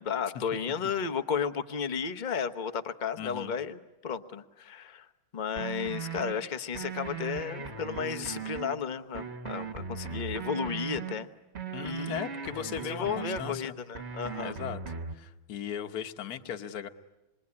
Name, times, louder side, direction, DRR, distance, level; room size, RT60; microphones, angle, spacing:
voice 1, 0.0-5.1 5.3-11.3 11.8-12.2 12.9-14.5, left 6 dB, 35° left, 9 dB, 0.7 m, -33 dB
voice 2, 3.2-3.5 11.7-13.7 14.4-14.8 15.1-16.9, left 9 dB, 55° left, 9 dB, 1.5 m, -37 dB
sound 1, 5.6-6.3 6.7-8.8 9.1-11.1 11.5-13.6 13.9-15.2, right 6 dB, 35° right, 1.4 m, -38 dB
27.0 x 22.5 x 9.7 m, 1.0 s
omnidirectional pair, 2.2 m